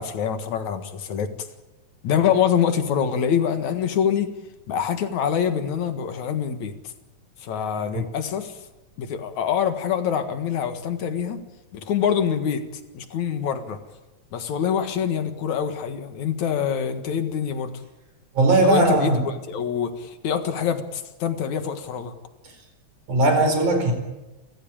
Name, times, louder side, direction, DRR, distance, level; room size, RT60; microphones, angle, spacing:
voice 1, 0.0-1.5 2.0-4.3 4.7-6.7 7.4-8.6 9.0-11.4 11.7-13.8 14.3-17.7 18.6-22.1, left 8 dB, 70° left, 8 dB, 3.0 m, -25 dB
voice 2, 18.4-19.2 23.1-23.9, right 2 dB, 85° right, 5 dB, 6.1 m, -18 dB
30.0 x 14.5 x 8.8 m, 1.1 s
omnidirectional pair, 3.4 m